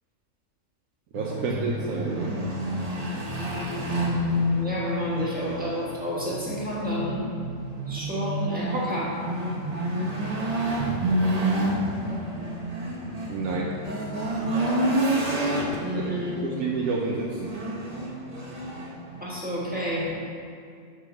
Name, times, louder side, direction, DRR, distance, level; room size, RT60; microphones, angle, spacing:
sound 1, 1.1-20.1, right 1 dB, 40° right, 0.6 m, -29 dB
voice 1, 1.1-2.4 13.3-13.8 15.9-17.6, right 4 dB, 75° right, -2 dB, 1.0 m, -30 dB
voice 2, 4.6-7.3 7.9-9.2 15.8-16.6 19.2-20.1, equal, 5° right, -8 dB, 1.3 m, -30 dB
6.7 x 3.7 x 4.8 m, 2.3 s
omnidirectional pair, 1.4 m